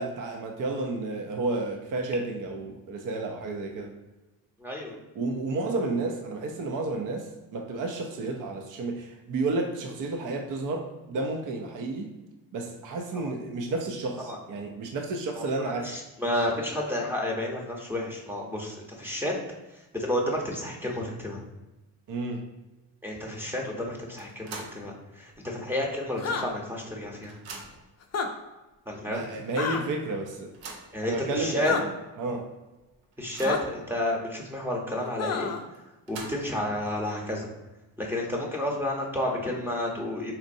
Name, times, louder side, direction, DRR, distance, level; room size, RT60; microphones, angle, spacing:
voice 1, 0.0-3.9 5.2-12.1 12.5-15.9 22.1-22.4 29.1-30.5 31.0-31.8 32.2-32.5, right 3 dB, 45° right, 2 dB, 0.6 m, -31 dB
voice 2, 4.6-5.0 13.1-13.3 14.3-14.4 15.4-19.3 19.9-21.4 23.0-27.4 28.9-29.2 30.9-31.7 33.2-35.5 36.1-37.5 38.0-40.3, left 1 dB, 5° right, -1 dB, 0.9 m, -31 dB
sound 1, 24.2-24.9 25.3-25.4 26.5-26.6 26.9-28.0 28.7-28.8 29.2-29.3 30.3-31.0 31.7-31.8 32.2-32.3 32.8-33.8 35.7-36.7, right 3 dB, 80° right, 0.8 m, -44 dB
sound 2, 26.2-26.5 28.0-28.3 29.6-29.8 31.6-31.8 33.4-33.6 35.2-35.6, left 5 dB, 35° left, 0.5 m, -29 dB
4.1 x 2.5 x 2.6 m, 1.1 s
supercardioid pair, 65°, 47 cm